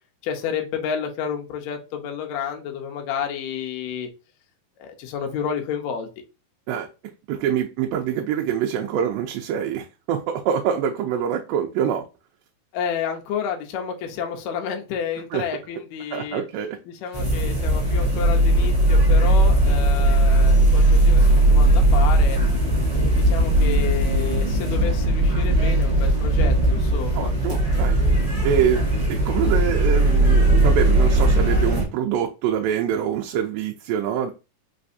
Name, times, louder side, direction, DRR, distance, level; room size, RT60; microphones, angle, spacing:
voice 1, 0.2-4.1 4.8-6.1 12.7-16.4 16.9-22.4 22.9-27.3, left 7 dB, 75° left, 1.7 m, -30 dB
voice 2, 7.3-12.1 15.3-15.4 16.1-16.8 27.2-28.0 28.4-28.8 29.1-34.3, right 9 dB, 90° right, 2.3 m, -25 dB
sound 1, 17.1-31.8, right 1 dB, 20° right, 1.1 m, -18 dB
5.3 x 3.2 x 2.6 m
omnidirectional pair, 3.9 m